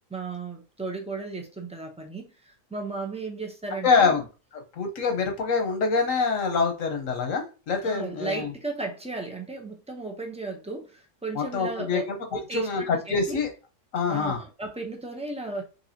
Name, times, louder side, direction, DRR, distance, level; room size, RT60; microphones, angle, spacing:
voice 1, 0.1-4.1 7.8-12.0 12.3-13.4 14.1-15.6, right 3 dB, 10° right, 0.5 m, -35 dB
voice 2, 3.8-4.3 4.7-8.5 11.3-13.5 13.9-14.4, left 4 dB, 80° left, 1.3 m, -25 dB
4.6 x 2.7 x 2.8 m
omnidirectional pair, 1.3 m